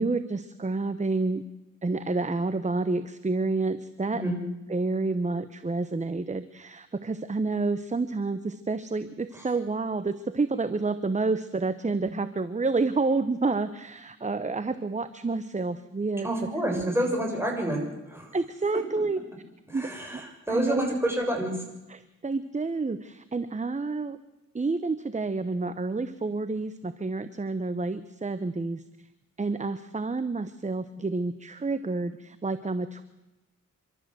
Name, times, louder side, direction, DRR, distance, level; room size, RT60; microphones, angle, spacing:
voice 1, 0.0-1.4 1.8-4.3 4.7-16.3 16.7-16.9 18.3-19.2 19.7-20.2 20.5-20.8 21.9-24.2 24.5-28.8 29.4-33.0, right 3 dB, 25° right, 13 dB, 0.9 m, -29 dB
voice 2, 16.2-17.8 18.1-18.3 19.7-21.5, right 1 dB, 10° right, 0 dB, 6.8 m, -28 dB
27.5 x 13.0 x 7.7 m, 1.0 s
cardioid pair, 80°, 31 cm